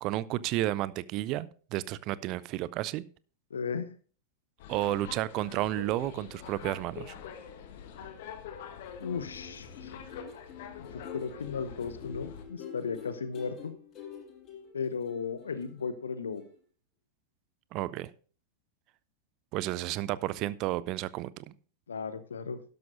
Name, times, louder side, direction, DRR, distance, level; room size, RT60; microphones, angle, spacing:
voice 1, 0.0-3.0 4.7-7.1 17.7-18.1 19.5-21.5, right 15 dB, 40° right, 0.4 m, -32 dB
voice 2, 3.5-3.9 9.0-9.9 10.9-13.8 14.7-16.4 21.9-22.6, left 5 dB, 70° left, 0.8 m, -35 dB
sound 1, 4.6-12.5, left 7 dB, 55° left, 1.4 m, -45 dB
sound 2, 8.9-16.1 16.3-16.5, left 7 dB, 30° left, 6.7 m, -47 dB
12.0 x 12.0 x 2.6 m
figure-of-eight pair, 90°, 0 cm